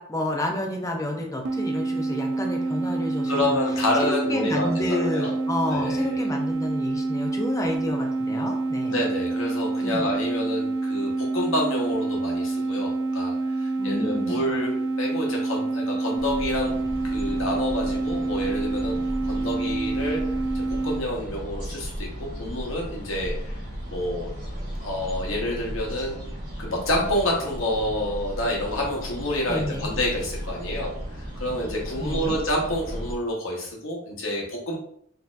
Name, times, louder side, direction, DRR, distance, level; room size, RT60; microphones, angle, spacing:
voice 1, 0.0-3.6 4.0-9.0 9.8-10.0 13.8-14.4 29.4-29.9 31.9-32.4, left 1 dB, 15° left, 2 dB, 0.5 m, -30 dB
sound 1, 1.4-21.0, right 3 dB, 60° right, 0.3 m, -27 dB
voice 2, 3.3-5.3 5.7-6.2 8.8-16.7 17.0-18.9 19.2-20.2 20.5-23.6 23.9-24.3 24.8-26.2 26.6-34.8, left 1 dB, 75° left, -2 dB, 0.9 m, -28 dB
sound 2, 16.2-33.1, equal, 40° right, 1.2 m, -35 dB
4.2 x 2.7 x 2.4 m, 0.67 s
head